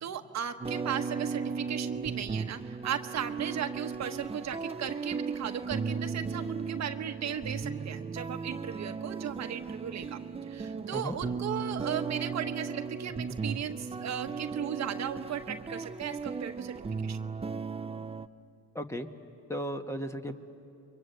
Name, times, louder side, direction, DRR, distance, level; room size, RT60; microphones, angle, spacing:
voice 1, 0.0-10.2 10.5-16.7 17.0-17.2, right 9 dB, 65° right, 7 dB, 1.2 m, -36 dB
sound 1, 0.6-18.3, right 5 dB, 20° right, 0.6 m, -36 dB
voice 2, 18.7-19.1 19.5-20.3, equal, 10° left, 5 dB, 1.5 m, -35 dB
28.5 x 23.5 x 8.1 m, 2.8 s
cardioid pair, 90°, 30 cm